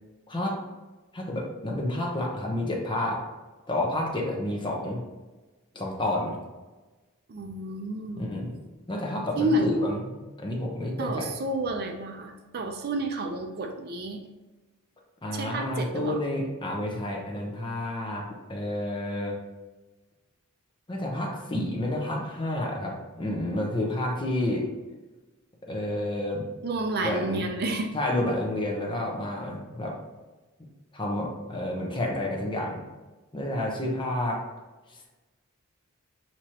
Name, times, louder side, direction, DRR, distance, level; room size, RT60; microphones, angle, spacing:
voice 1, 1.1-3.2 3.7-5.0 5.7-6.4 8.2-8.6 8.9-11.3 15.2-19.4 20.9-24.6 25.6-26.5 27.0-27.5 27.9-30.0 30.9-32.8 33.3-34.4, left 1 dB, 20° left, 0 dB, 0.8 m, -30 dB
voice 2, 7.3-8.3 9.4-9.9 11.0-14.2 15.3-16.2 26.6-27.9, right 1 dB, 45° right, 4 dB, 0.5 m, -30 dB
6.2 x 2.9 x 2.9 m, 1.2 s
head